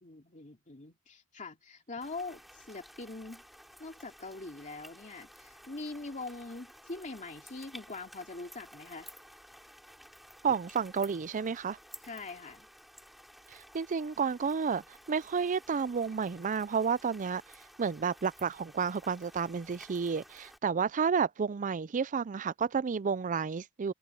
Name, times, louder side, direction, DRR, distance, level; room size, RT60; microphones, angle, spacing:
voice 1, 0.0-3.4 3.8-9.1 12.0-12.7, left 3 dB, 35° left, 2.7 m, -43 dB
sound 1, 2.0-20.6, equal, ahead, 4.7 m, -54 dB
voice 2, 10.4-11.8 13.5-14.8 15.1-17.4 17.8-23.9, right 6 dB, 35° right, 0.4 m, -31 dB
open air
head